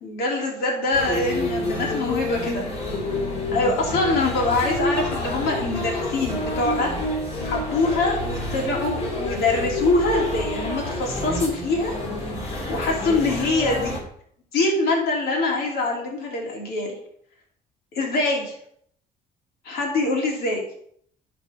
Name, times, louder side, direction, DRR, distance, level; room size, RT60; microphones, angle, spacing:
voice 1, 0.0-2.6 3.5-6.9 7.4-11.9 12.4-13.9 14.5-16.9 17.9-18.5 19.6-20.6, left 2 dB, 70° left, -1 dB, 3.2 m, -24 dB
sound 1, 0.9-14.0, left 1 dB, 35° left, 3.2 m, -28 dB
11.0 x 4.4 x 5.2 m, 0.66 s
cardioid pair, 110°, 17 cm